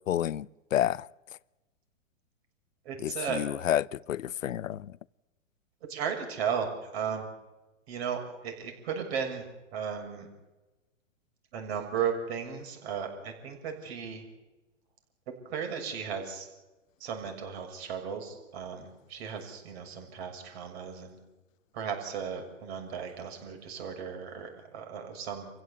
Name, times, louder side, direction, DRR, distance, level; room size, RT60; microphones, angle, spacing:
voice 1, 0.1-1.1 3.0-4.9, left 11 dB, 85° left, 0.7 m, -30 dB
voice 2, 2.9-3.4 5.9-6.7 6.9-7.3 7.9-10.3 11.5-14.2 15.5-16.5 17.0-21.1 21.7-25.5, right 7 dB, 55° right, 6.9 m, -35 dB
27.5 x 15.5 x 8.5 m
hypercardioid pair, 130°, 38 cm